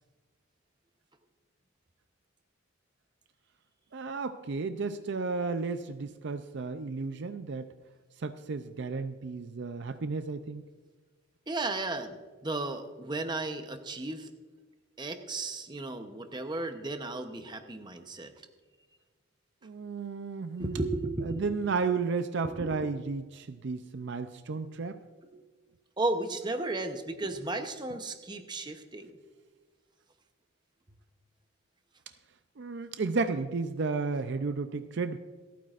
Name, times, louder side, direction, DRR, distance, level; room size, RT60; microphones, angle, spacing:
voice 1, 3.9-7.7 8.2-10.6 19.6-20.8 21.2-25.1 32.6-35.2, right 4 dB, 55° right, 10 dB, 0.4 m, -33 dB
voice 2, 11.5-14.3 15.0-18.3 20.6-21.5 22.4-22.8 26.0-29.1, right 2 dB, 20° right, 7 dB, 0.8 m, -34 dB
27.0 x 9.3 x 2.5 m, 1.4 s
head